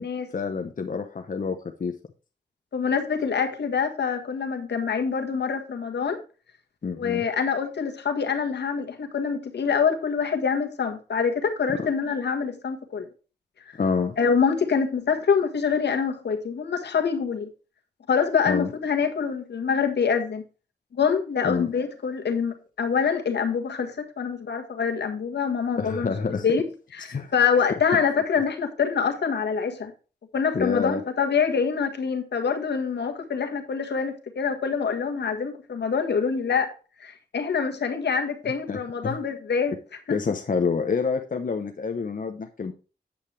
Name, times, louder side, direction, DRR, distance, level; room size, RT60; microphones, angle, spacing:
voice 1, 0.3-1.9 6.8-7.3 11.8-11.9 13.8-14.2 18.5-18.7 21.4-21.7 25.8-26.4 27.1-27.7 30.5-31.0 38.7-39.2 40.1-42.7, left 5 dB, 50° left, 5 dB, 0.8 m, -28 dB
voice 2, 2.7-6.2 6.9-13.1 14.2-17.5 18.1-20.4 20.9-26.1 26.4-26.6 26.9-29.9 30.3-36.7 37.0-39.7, left 6 dB, 80° left, 5 dB, 1.5 m, -25 dB
8.7 x 7.2 x 3.3 m, 0.35 s
cardioid pair, 60°, 17 cm